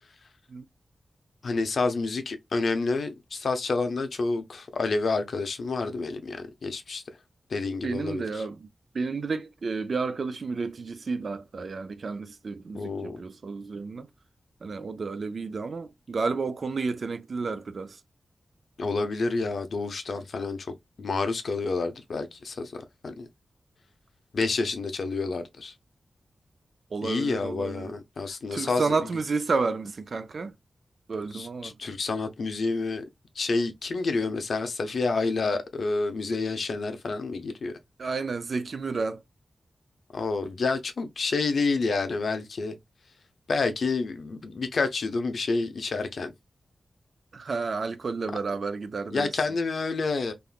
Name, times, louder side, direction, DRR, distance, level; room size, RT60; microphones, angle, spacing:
voice 1, 1.4-7.0 7.5-8.5 12.7-13.2 18.8-23.3 24.3-25.7 27.0-29.1 31.3-33.1 33.3-37.8 40.1-42.8 43.5-46.3 49.1-50.3, left 3 dB, 65° left, 0.6 m, -29 dB
voice 2, 7.8-8.7 8.9-14.1 14.6-18.0 26.9-27.9 28.5-30.5 31.1-31.7 38.0-39.2 47.3-49.3, right 4 dB, 50° right, 0.3 m, -31 dB
3.5 x 2.5 x 2.3 m
wide cardioid pair, 150°, 0 cm